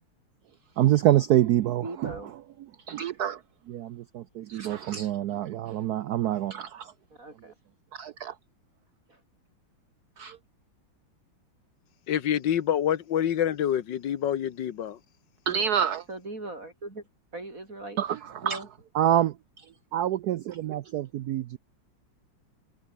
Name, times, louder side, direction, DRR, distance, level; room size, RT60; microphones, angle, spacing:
voice 1, 0.8-2.1 2.9-3.4 3.7-6.9 7.9-8.3 10.2-10.4 15.5-16.0 18.0-18.6 18.9-19.6 19.9-21.6, right 11 dB, 85° right, 0.8 m, -26 dB
voice 2, 1.8-2.3 7.2-7.6 9.1-9.2 15.5-15.6 16.1-17.0 17.3-18.0 18.4-18.7, right 2 dB, 40° right, 5.3 m, -39 dB
voice 3, 12.1-15.0, left 10 dB, 60° left, 1.8 m, -27 dB
omnidirectional pair, 2.3 m